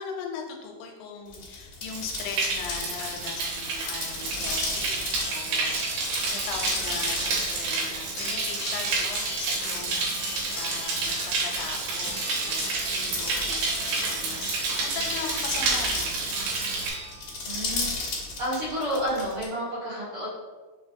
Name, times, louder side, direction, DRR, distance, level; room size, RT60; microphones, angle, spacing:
voice 1, 0.0-16.3, left 6 dB, 90° left, 2 dB, 2.6 m, -39 dB
sound 1, 1.3-19.4, left 3 dB, 55° left, 1.7 m, -36 dB
sound 2, 1.9-16.9, right 3 dB, 90° right, 3.1 m, -29 dB
sound 3, 3.0-3.1 4.5-17.5 18.7-18.8 19.2-19.3, left 2 dB, 75° left, 1.9 m, -39 dB
voice 2, 17.4-17.9 18.4-20.3, equal, 55° right, -10 dB, 2.3 m, -30 dB
6.2 x 2.8 x 2.5 m, 1.3 s
omnidirectional pair, 4.6 m